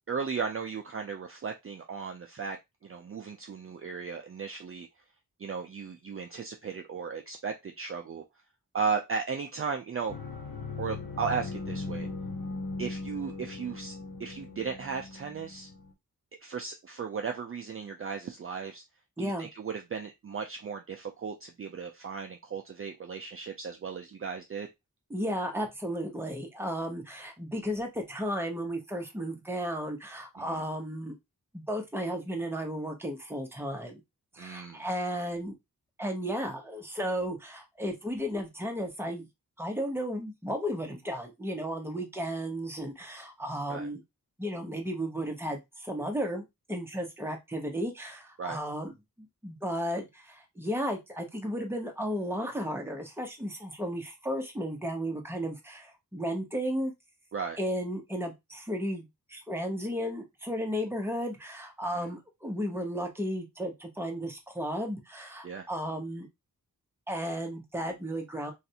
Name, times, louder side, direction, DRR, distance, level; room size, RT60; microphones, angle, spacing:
voice 1, 0.1-2.6 2.8-4.9 5.4-8.2 8.7-10.1 10.8-12.1 12.8-15.7 16.4-18.8 19.2-24.7 30.4-30.6 34.4-34.8 43.7-43.9 48.4-48.6 57.3-57.6 61.9-62.1 65.4-65.7, right 5 dB, 40° right, 3 dB, 0.4 m, -36 dB
sound 1, 10.1-15.9, left 3 dB, 75° left, 0.8 m, -39 dB
voice 2, 25.1-31.1 31.5-34.0 34.3-35.5 36.0-39.3 39.6-44.0 44.4-48.9 49.4-56.9 57.6-66.3 67.1-68.5, equal, 5° right, 2 dB, 0.8 m, -34 dB
3.2 x 2.5 x 2.8 m, 0.20 s
wide cardioid pair, 110°, 35 cm